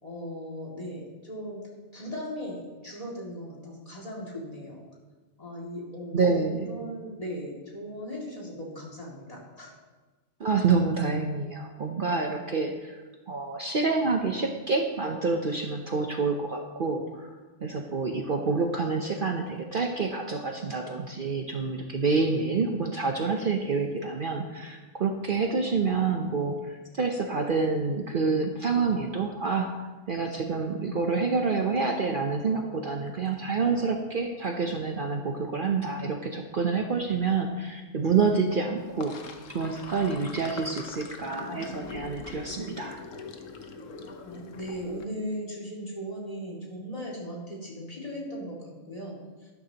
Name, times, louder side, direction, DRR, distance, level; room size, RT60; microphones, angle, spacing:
voice 1, 0.0-4.8 5.4-9.7 44.2-49.5, equal, 30° left, -4 dB, 2.4 m, -38 dB
voice 2, 6.1-6.7 10.4-13.0 13.3-43.0, right 4 dB, 50° right, 3 dB, 0.9 m, -28 dB
Sink (filling or washing), 38.8-45.0, left 4 dB, 80° left, 1.3 m, -42 dB
12.0 x 12.0 x 2.9 m, 1.3 s
omnidirectional pair, 1.3 m